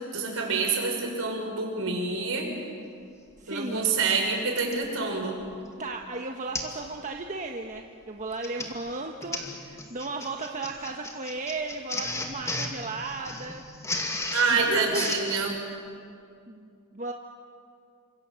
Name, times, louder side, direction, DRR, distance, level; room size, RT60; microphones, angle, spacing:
voice 1, 0.1-2.5 3.5-5.3 14.3-15.6, right 4 dB, 65° right, 2 dB, 6.2 m, -27 dB
Printer, 3.4-3.5 4.6-4.9 5.4-5.7 5.9-6.0 6.5-6.8 7.1-7.4 8.2-15.4, left 2 dB, 15° left, 2.5 m, -35 dB
voice 2, 3.4-3.8 5.8-13.6 14.5-15.1 16.5-17.1, right 3 dB, 35° right, 2 dB, 1.4 m, -35 dB
29.0 x 26.0 x 7.8 m, 2.4 s
head